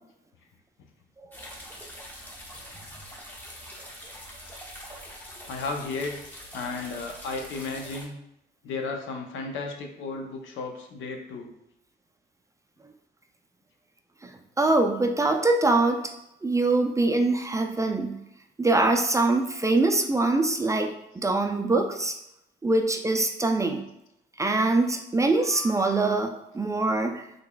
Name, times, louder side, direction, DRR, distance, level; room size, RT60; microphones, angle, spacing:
sound 1, 1.3-8.1, equal, 10° left, 0.8 m, -44 dB
voice 1, 5.5-6.2 6.5-8.2 8.6-11.5, left 3 dB, 80° left, 3 dB, 0.7 m, -34 dB
voice 2, 14.6-16.0 16.4-18.2 18.6-22.2 22.6-23.8 24.4-27.3, right 2 dB, 15° right, 4 dB, 0.3 m, -23 dB
3.7 x 3.4 x 2.2 m, 0.84 s
cardioid pair, 90°, 20 cm